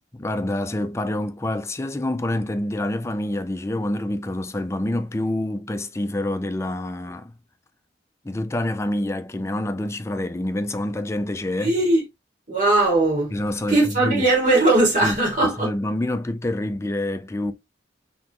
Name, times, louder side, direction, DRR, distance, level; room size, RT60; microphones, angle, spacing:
voice 1, 0.1-7.3 8.2-11.7 13.3-14.3 15.0-15.2 15.4-17.5, left 1 dB, 15° left, 0.4 m, -27 dB
voice 2, 11.6-12.0 12.5-13.3 13.7-15.7, right 2 dB, 45° right, 2.5 m, -19 dB
4.1 x 3.9 x 3.0 m
head